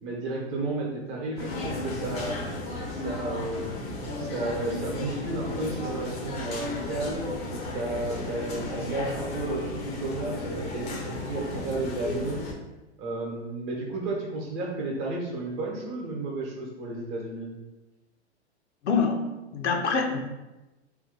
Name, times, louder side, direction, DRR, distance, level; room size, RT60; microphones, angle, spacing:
voice 1, 0.0-2.4 2.9-7.2 7.7-12.4 13.0-17.5, right 2 dB, 35° right, -1 dB, 0.9 m, -32 dB
sound 1, 1.4-12.5, left 2 dB, 20° left, 0.5 m, -34 dB
voice 2, 18.8-19.2 19.5-20.2, left 5 dB, 80° left, 3 dB, 0.7 m, -25 dB
2.7 x 2.2 x 3.8 m, 1.1 s
hypercardioid pair, 125°, 34 cm